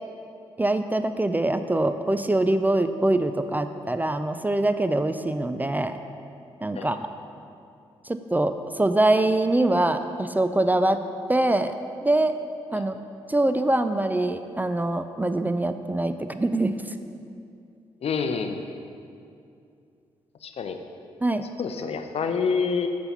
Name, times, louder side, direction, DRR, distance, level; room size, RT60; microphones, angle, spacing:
voice 1, 0.6-6.0 6.6-7.1 8.1-11.0 11.3-11.7 12.0-12.4 12.7-13.0 13.3-16.8 21.2-21.5, right 2 dB, 15° right, 9 dB, 0.4 m, -23 dB
voice 2, 18.0-18.7 20.4-20.8 21.6-22.9, left 5 dB, 60° left, 7 dB, 0.6 m, -27 dB
7.6 x 4.2 x 5.8 m, 2.5 s
supercardioid pair, 50°, 12 cm